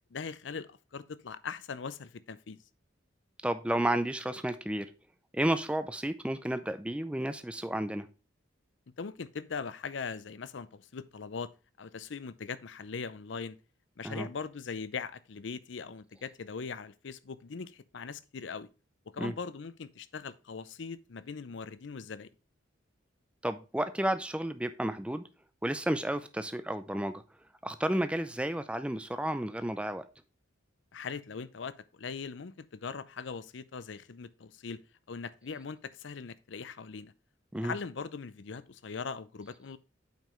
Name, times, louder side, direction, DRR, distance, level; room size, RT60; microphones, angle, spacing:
voice 1, 0.1-2.6 9.0-11.5 11.8-13.6 14.0-18.7 19.1-22.3 30.9-34.8 35.1-37.1 37.6-39.8, left 5 dB, 65° left, 0.5 m, -40 dB
voice 2, 3.4-4.9 5.3-8.1 14.0-14.3 19.2-19.3 23.4-25.2 25.6-27.2 27.6-30.0 37.5-37.7, right 1 dB, 5° right, 0.5 m, -32 dB
9.0 x 5.3 x 3.1 m
head